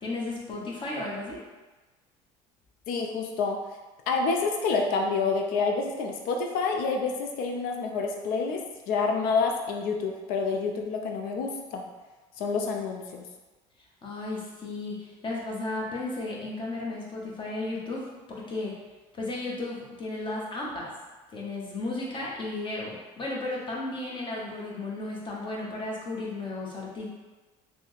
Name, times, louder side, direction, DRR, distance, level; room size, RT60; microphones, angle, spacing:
voice 1, 0.0-1.4 14.0-18.7 19.1-20.9 21.3-27.1, left 2 dB, 30° left, -4 dB, 0.9 m, -34 dB
voice 2, 2.9-3.6 4.1-11.8 12.4-13.3, left 4 dB, 65° left, 3 dB, 0.5 m, -28 dB
3.2 x 2.1 x 3.0 m, 1.2 s
supercardioid pair, 90°, 16 cm